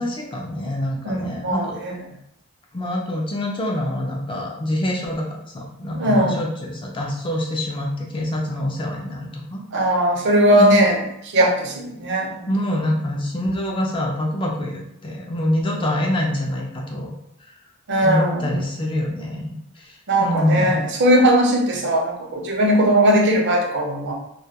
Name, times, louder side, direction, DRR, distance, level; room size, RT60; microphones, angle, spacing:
voice 1, 0.0-1.8 2.7-5.3 5.5-9.6 10.5-10.8 12.5-17.1 18.0-20.8, left 1 dB, 25° left, -1 dB, 0.4 m, -25 dB
voice 2, 1.0-2.0 6.0-6.4 9.7-11.0 11.3-12.5 17.9-18.6 20.1-24.1, equal, 55° right, 0 dB, 0.5 m, -19 dB
2.2 x 2.2 x 2.7 m, 0.80 s
head